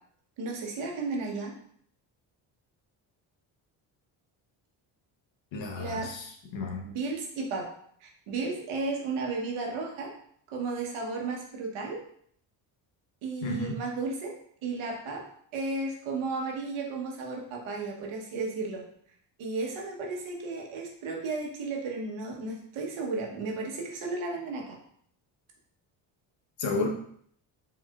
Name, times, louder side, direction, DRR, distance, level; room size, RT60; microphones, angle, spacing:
voice 1, 0.4-1.5 5.8-6.1 6.8-7.7 8.0-10.1 10.5-12.0 13.2-14.3 14.6-15.2 15.5-18.8 19.4-24.8, right 3 dB, 75° right, 0 dB, 1.2 m, -34 dB
voice 2, 5.5-6.9 13.4-13.8 26.6-26.9, left 3 dB, 60° left, 2 dB, 1.0 m, -32 dB
4.7 x 3.1 x 2.4 m, 0.64 s
supercardioid pair, 70°, 50 cm